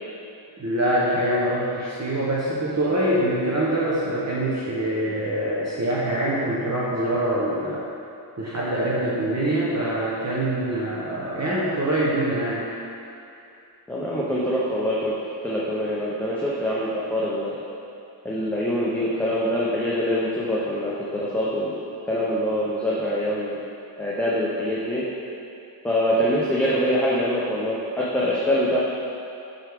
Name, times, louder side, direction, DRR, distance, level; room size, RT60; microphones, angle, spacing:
voice 1, 0.6-7.8 8.4-12.6, right 1 dB, 35° right, -7 dB, 0.9 m, -24 dB
voice 2, 13.9-15.1 15.4-17.5 18.2-23.6 24.0-25.0 25.8-28.8, equal, 5° left, -8 dB, 0.8 m, -24 dB
7.9 x 6.3 x 3.6 m, 2.7 s
wide cardioid pair, 150°, 46 cm